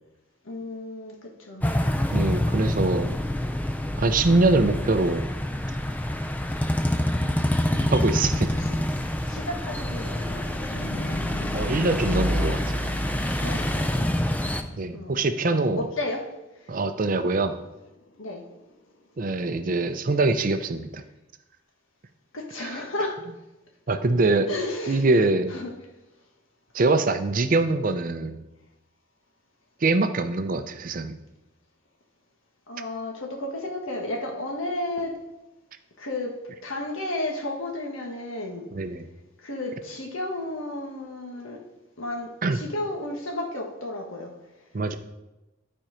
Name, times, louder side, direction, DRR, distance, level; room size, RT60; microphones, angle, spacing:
voice 1, 0.4-1.7 7.7-8.8 9.2-11.2 13.4-14.1 14.9-16.7 18.2-18.4 22.3-23.2 24.5-25.7 32.7-35.2 36.0-36.4 36.6-38.7 39.4-41.6 42.0-44.3, left 2 dB, 90° left, 1 dB, 1.5 m, -33 dB
sound 1, 1.6-14.6, left 1 dB, 10° left, 0.4 m, -26 dB
voice 2, 2.1-3.2 4.0-5.3 7.9-8.5 11.5-12.6 14.8-15.9 16.7-17.6 19.2-21.0 22.6-22.7 23.9-24.5 24.9-25.5 26.7-28.4 29.8-31.2 38.7-39.1 42.4-42.6 44.7-45.0, right 3 dB, 40° right, 9 dB, 0.5 m, -23 dB
sound 2, 10.7-15.2 16.5-16.6 17.0-19.1, left 1 dB, 65° left, 0.8 m, -41 dB
11.5 x 4.4 x 5.0 m, 0.99 s
head